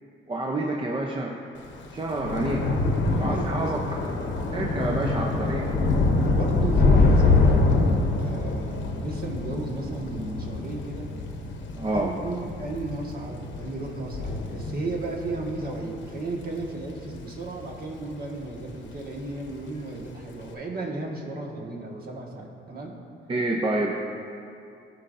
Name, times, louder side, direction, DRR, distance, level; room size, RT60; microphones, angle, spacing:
voice 1, 0.3-1.3 1.9-2.6 3.2-3.8 4.5-5.7 11.8-12.1 23.3-23.9, right 2 dB, 25° right, -1 dB, 0.7 m, -28 dB
Thunder / Rain, 1.7-18.2 18.6-19.0 19.3-19.5, left 3 dB, 70° left, 0.9 m, -25 dB
voice 2, 2.1-2.4 3.0-3.8 6.1-7.6 8.1-11.1 11.9-22.9, right 2 dB, 50° right, -1 dB, 1.6 m, -34 dB
15.5 x 5.3 x 2.6 m, 2.6 s
cardioid pair, 90°, 20 cm